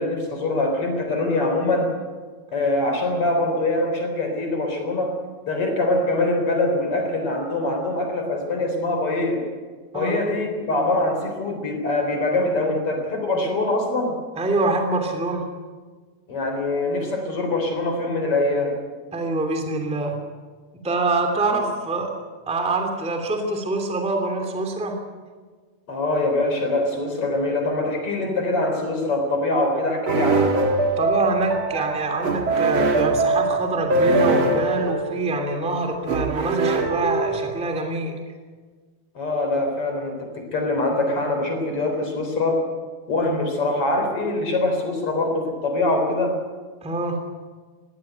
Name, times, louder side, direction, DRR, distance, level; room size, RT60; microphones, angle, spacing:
voice 1, 0.0-1.9 2.5-5.2 5.4-9.5 9.9-14.2 16.3-18.8 21.5-21.6 25.9-30.5 39.1-42.7 43.1-46.4, left 2 dB, 35° left, 4 dB, 4.3 m, -23 dB
voice 2, 14.4-15.4 19.1-20.2 20.8-22.1 22.5-25.0 31.0-38.1 46.8-47.3, right 2 dB, ahead, 4 dB, 1.8 m, -25 dB
sound 1, 30.1-37.7, right 3 dB, 45° right, 1.6 m, -22 dB
21.0 x 16.5 x 9.3 m, 1.5 s
omnidirectional pair, 5.1 m